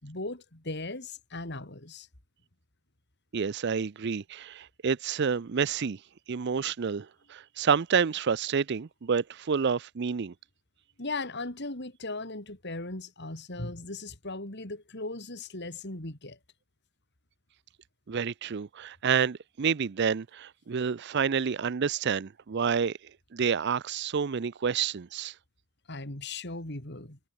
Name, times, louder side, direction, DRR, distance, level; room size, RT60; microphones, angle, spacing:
voice 1, 0.0-2.1 11.0-16.4 25.9-27.2, left 2 dB, 50° left, 3.2 m, -38 dB
voice 2, 3.3-6.0 6.3-10.3 18.1-23.0 23.3-25.3, right 6 dB, 50° right, 0.5 m, -29 dB
head